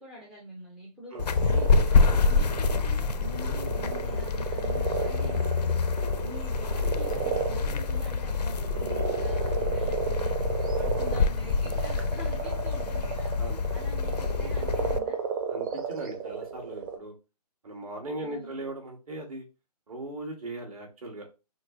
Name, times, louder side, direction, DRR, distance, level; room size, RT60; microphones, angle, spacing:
voice 1, 0.0-15.3 18.2-18.6, left 1 dB, ahead, -4 dB, 0.3 m, -45 dB
sound 1, 1.1-17.0, right 7 dB, 30° right, 0.7 m, -33 dB
sound 2, 1.2-15.0, left 4 dB, 80° left, 0.4 m, -27 dB
voice 2, 15.5-17.1 17.6-19.4 19.9-21.3, right 2 dB, 60° right, 2 dB, 1.7 m, -39 dB
6.2 x 2.1 x 2.5 m, 0.28 s
figure-of-eight pair, 140°, 21 cm